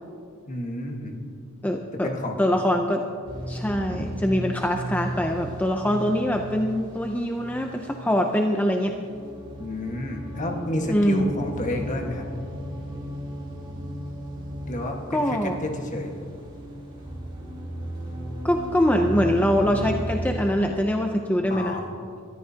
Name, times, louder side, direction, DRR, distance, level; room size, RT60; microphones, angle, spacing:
voice 1, 0.5-1.2 2.0-2.4 3.9-4.2 9.6-12.3 14.7-16.1 21.5-21.9, left 1 dB, 35° left, 2 dB, 1.5 m, -31 dB
voice 2, 1.6-2.1 2.4-3.0 3.5-8.9 10.9-11.3 15.1-15.6 18.4-21.8, equal, 5° left, 3 dB, 0.5 m, -23 dB
sound 1, 3.3-20.6, right 1 dB, 25° right, 2.6 m, -35 dB
21.0 x 13.5 x 2.8 m, 2.4 s
head